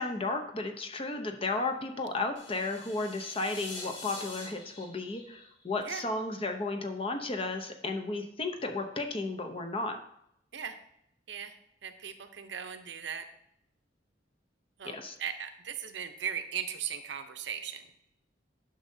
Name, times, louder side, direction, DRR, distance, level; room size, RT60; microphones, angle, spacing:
voice 1, 0.0-10.0 14.8-15.1, left 3 dB, 30° left, 6 dB, 0.7 m, -34 dB
sound 1, 2.4-6.4, left 2 dB, 90° left, 1.8 m, -46 dB
voice 2, 11.3-13.3 14.8-17.8, right 8 dB, 65° right, 8 dB, 0.7 m, -38 dB
10.0 x 6.4 x 2.7 m, 0.75 s
head